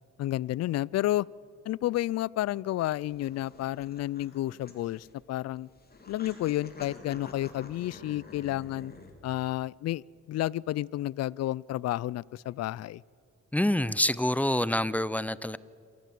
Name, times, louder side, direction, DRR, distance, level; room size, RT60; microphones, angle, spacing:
voice 1, 0.2-1.3 1.7-5.7 6.1-8.9 9.2-10.0 10.3-13.0, left 14 dB, 60° left, 25 dB, 0.4 m, -31 dB
horny cat, 3.1-9.1, left 3 dB, 30° left, 3.2 m, -49 dB
voice 2, 13.5-15.6, left 1 dB, 5° left, 18 dB, 0.6 m, -26 dB
27.5 x 15.0 x 7.7 m, 2.4 s
cardioid pair, 90°, 30 cm